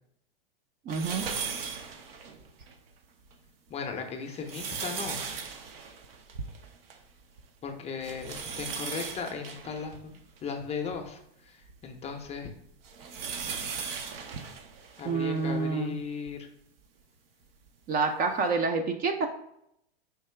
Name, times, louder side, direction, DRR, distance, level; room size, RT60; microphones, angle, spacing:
voice 1, 0.9-1.2 1.6-1.7 15.0-15.9 17.9-19.3, right 4 dB, 30° right, 5 dB, 0.4 m, -28 dB
sound 1, 0.9-2.7 3.3-3.4 4.1-7.1 7.4-7.5 8.0-11.0 11.7-15.5 16.3-16.4 17.7-17.8, right 5 dB, 70° right, 0.7 m, -38 dB
voice 2, 3.7-5.2 7.6-11.2 11.5-12.5 15.0-16.5, left 5 dB, 20° left, 4 dB, 0.5 m, -37 dB
4.6 x 2.8 x 3.2 m, 0.77 s
hypercardioid pair, 110°, 30 cm